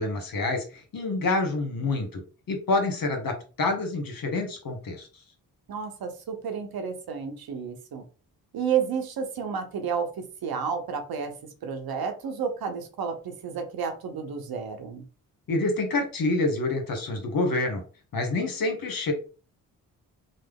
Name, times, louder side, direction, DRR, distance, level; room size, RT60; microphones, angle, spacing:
voice 1, 0.0-2.2 2.5-5.1 15.5-17.8 18.1-19.1, left 2 dB, 55° left, 5 dB, 1.1 m, -27 dB
voice 2, 5.7-8.0 8.5-11.3 11.6-15.0, right 6 dB, 60° right, 5 dB, 0.8 m, -31 dB
3.1 x 2.0 x 3.5 m, 0.35 s
hypercardioid pair, 40°, 42 cm